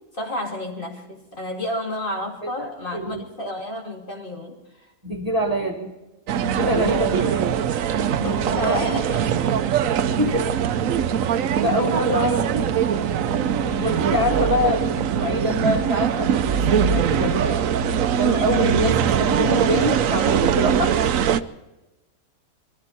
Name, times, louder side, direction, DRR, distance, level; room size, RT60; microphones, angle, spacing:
voice 1, 0.1-4.6 6.7-7.3 7.9-9.5 10.2-10.4 13.5-14.1, left 1 dB, 40° left, 0 dB, 2.9 m, -31 dB
voice 2, 2.4-3.2 5.0-5.9 6.4-7.4 8.6-8.8 10.2-10.5 11.6-12.7 13.8-17.6 18.2-21.0, left 1 dB, 25° right, 1 dB, 1.8 m, -25 dB
sound 1, 6.3-21.4, right 8 dB, 70° right, 1.1 m, -22 dB
22.0 x 15.0 x 4.2 m, 1.0 s
omnidirectional pair, 1.5 m